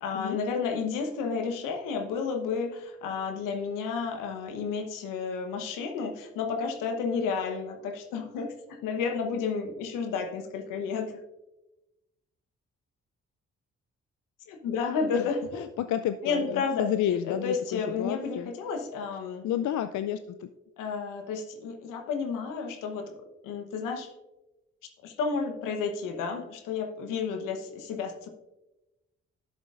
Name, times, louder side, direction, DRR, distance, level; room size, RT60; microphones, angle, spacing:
voice 1, 0.0-11.2 14.5-15.6 16.2-16.9 17.3-19.5 20.8-23.1 23.4-24.1 25.0-28.3, left 5 dB, 85° left, 5 dB, 1.1 m, -31 dB
voice 2, 15.1-18.5 19.4-20.5, left 10 dB, 70° left, 11 dB, 0.5 m, -31 dB
11.5 x 7.1 x 2.5 m, 0.98 s
hypercardioid pair, 45°, 31 cm